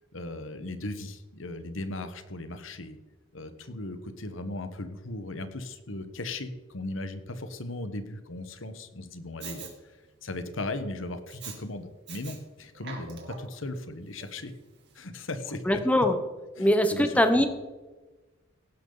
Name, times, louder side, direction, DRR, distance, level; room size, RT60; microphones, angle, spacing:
voice 1, 0.1-3.0 3.3-9.7 10.2-14.5 14.9-15.8 16.6-17.5, left 2 dB, 75° left, 9 dB, 1.3 m, -37 dB
Respiratory sounds, 9.4-9.7 11.3-11.6 12.1-12.4 12.7-13.6 14.2-14.3, right 6 dB, 60° right, 2.7 m, -42 dB
voice 2, 15.6-16.2 16.6-17.5, left 1 dB, 5° left, 7 dB, 1.1 m, -22 dB
17.5 x 10.5 x 4.0 m, 1.2 s
head